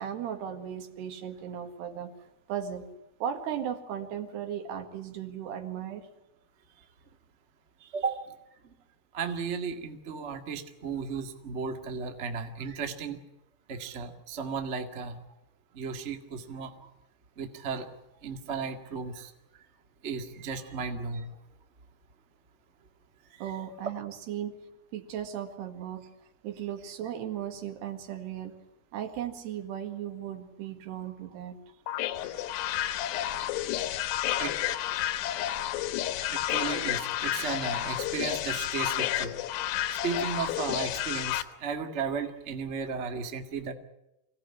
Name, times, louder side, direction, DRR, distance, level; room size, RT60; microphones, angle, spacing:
voice 1, 0.0-2.1 2.5-2.9 3.2-6.1 23.4-24.6 24.9-26.0 26.4-28.5 28.9-31.6, right 9 dB, 75° right, 6 dB, 4.0 m, -36 dB
voice 2, 7.8-8.2 9.1-13.2 13.7-15.2 15.7-16.9 17.4-17.9 18.2-19.3 20.0-21.3 23.3-23.4 32.3-32.4 34.0-35.1 35.7-35.9 36.3-39.4 40.0-43.7, right 5 dB, 60° right, 5 dB, 0.7 m, -35 dB
sound 1, 31.9-41.4, left 13 dB, 85° left, 3.2 m, -31 dB
25.0 x 17.5 x 9.9 m, 0.89 s
omnidirectional pair, 4.9 m